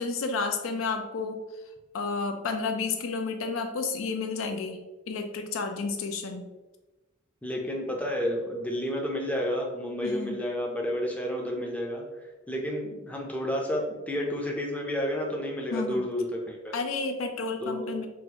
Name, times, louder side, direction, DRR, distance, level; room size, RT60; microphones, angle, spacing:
voice 1, 0.0-1.4 1.9-6.5 10.0-10.4 15.7-16.1 16.7-18.1, left 4 dB, 80° left, 6 dB, 0.4 m, -31 dB
voice 2, 7.4-12.0 12.5-16.7 17.6-17.9, equal, 5° left, 0 dB, 0.5 m, -30 dB
3.9 x 2.5 x 2.8 m, 1.1 s
head